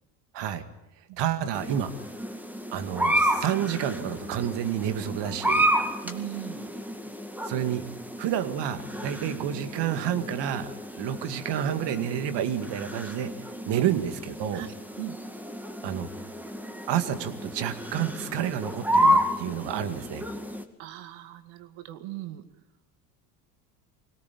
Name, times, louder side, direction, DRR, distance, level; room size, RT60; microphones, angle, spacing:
voice 1, 1.2-1.9 2.7-5.7 7.4-7.8 8.2-13.3 13.7-14.6 15.8-16.1 16.9-20.2, right 10 dB, 60° right, 10 dB, 2.2 m, -29 dB
sound 1, 1.5-20.6, equal, 5° right, 2.1 m, -30 dB
voice 2, 6.0-7.1 13.7-14.0 14.5-15.2 20.8-22.4, right 15 dB, 75° right, 10 dB, 2.3 m, -39 dB
21.5 x 18.0 x 8.6 m, 0.86 s
supercardioid pair, 100°, 48 cm